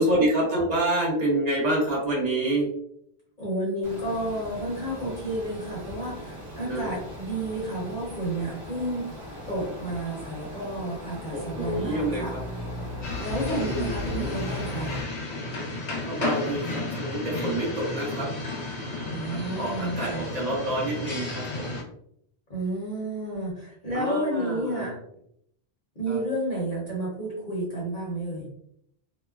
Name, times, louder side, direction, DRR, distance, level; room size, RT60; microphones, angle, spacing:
voice 1, 0.0-2.7 6.7-6.9 11.3-12.4 13.5-14.4 16.1-18.3 19.5-21.8 23.9-24.9 26.1-26.2, right 1 dB, 40° right, -5 dB, 1.0 m, -27 dB
voice 2, 3.4-9.1 9.5-12.3 13.2-14.9 19.1-20.3 22.5-24.9 26.0-28.5, right 1 dB, 45° left, -6 dB, 1.1 m, -31 dB
sound 1, 3.8-15.0, left 1 dB, 75° right, 1.2 m, -37 dB
sound 2, 13.0-21.8, left 2 dB, 80° left, 1.0 m, -33 dB
3.0 x 2.1 x 2.3 m, 0.72 s
omnidirectional pair, 1.1 m